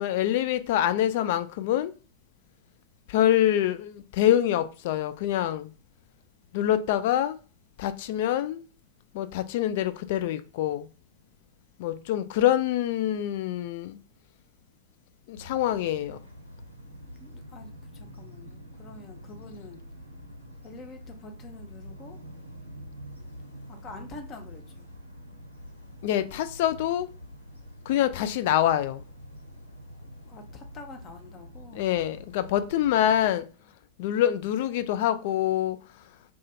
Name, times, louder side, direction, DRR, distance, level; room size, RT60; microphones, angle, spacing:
voice 1, 0.0-1.9 3.1-5.7 6.5-7.4 7.8-8.6 9.1-10.9 11.8-14.0 15.3-16.2 26.0-27.1 27.9-29.0 31.7-33.5 34.0-35.8, left 11 dB, 50° left, 0.3 m, -25 dB
sound 1, 15.3-33.3, equal, 85° right, 0.6 m, -46 dB
voice 2, 17.2-19.8 20.6-22.2 23.7-24.9 30.2-31.8, left 3 dB, 30° left, 0.7 m, -46 dB
2.5 x 2.4 x 4.0 m
figure-of-eight pair, 90°, 0 cm